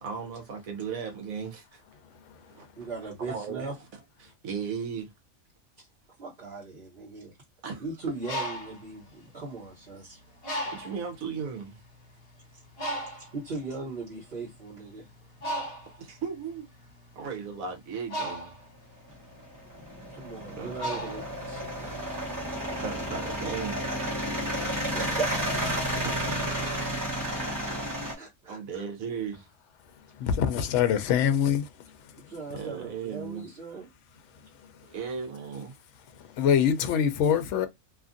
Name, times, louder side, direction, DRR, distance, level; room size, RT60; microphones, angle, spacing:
voice 1, 0.0-1.8 2.5-2.7 3.2-3.7 4.2-5.1 7.6-8.1 10.7-11.8 16.0-16.7 17.1-18.5 20.6-21.1 22.8-23.9 26.0-26.4 28.5-29.5 32.5-33.4 34.9-35.8, right 6 dB, 75° right, 1.2 m, -36 dB
voice 2, 2.8-3.7 5.8-5.9 6.2-7.3 7.8-10.2 12.9-15.1 20.0-22.0 24.9-26.6 28.2-28.8 31.2-31.4 32.2-33.9 36.4-36.5, right 3 dB, 45° right, 1.2 m, -39 dB
Bird, 8.0-9.9 10.4-11.1 11.8-11.9 12.2-21.9, equal, 50° left, 1.1 m, -37 dB
sound 1, 19.1-28.1, equal, 15° right, 0.9 m, -32 dB
voice 3, 30.2-31.7 36.4-37.7, left 8 dB, 65° left, 0.8 m, -24 dB
2.8 x 2.4 x 2.5 m
omnidirectional pair, 1.5 m